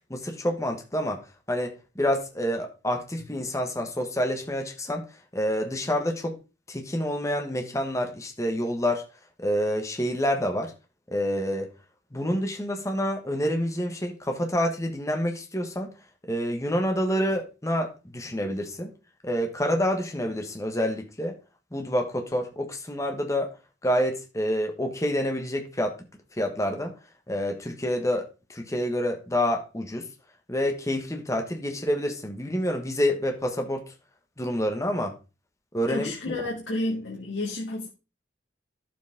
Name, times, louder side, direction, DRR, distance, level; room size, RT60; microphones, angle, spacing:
voice 1, 0.1-1.2 1.5-5.1 5.3-6.4 6.7-9.0 9.4-10.7 11.1-11.7 12.1-15.9 16.3-18.9 19.2-21.4 21.7-23.5 23.8-26.0 26.4-26.9 27.3-30.1 30.5-33.9 34.4-35.1 35.7-36.3, equal, 15° left, 1.5 m, -28 dB
voice 2, 35.9-37.9, left 2 dB, 80° left, 2.0 m, -30 dB
11.5 x 7.4 x 3.6 m
head